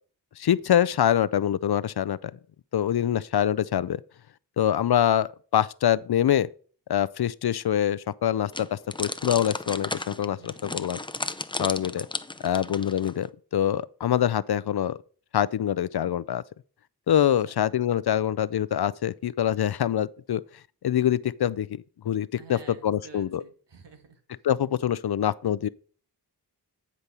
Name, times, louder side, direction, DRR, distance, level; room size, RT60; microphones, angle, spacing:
voice 1, 0.4-2.3 2.7-4.0 4.6-6.5 6.9-11.0 11.6-12.1 12.4-13.3 13.5-15.0 15.3-16.4 17.1-20.4 20.8-21.7 22.0-22.6 22.8-23.4 24.4-25.7, left 10 dB, 65° left, 0.5 m, -25 dB
sound 1, 8.5-13.3, left 2 dB, 10° left, 0.6 m, -34 dB
voice 2, 10.3-10.7 17.2-17.6 22.4-24.4, right 5 dB, 80° right, 1.7 m, -51 dB
9.7 x 5.2 x 4.2 m
cardioid pair, 45°, 41 cm